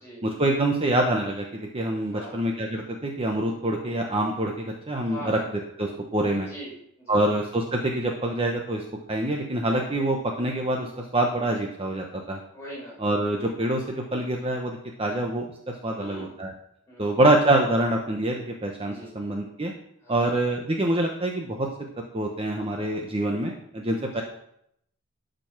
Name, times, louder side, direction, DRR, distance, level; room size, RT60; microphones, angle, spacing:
voice 1, 0.2-5.4 5.8-6.5 7.1-12.4 13.0-15.5 15.8-16.5 17.0-19.7 20.1-21.7 22.1-24.2, right 1 dB, 25° right, 1 dB, 0.9 m, -25 dB
voice 2, 5.1-5.4 6.5-7.2 10.7-10.9 12.5-13.0 15.9-16.4 16.9-17.2 18.8-19.1 20.0-20.3 24.1-24.2, equal, 10° left, -5 dB, 5.0 m, -41 dB
12.0 x 5.3 x 6.0 m, 0.74 s
head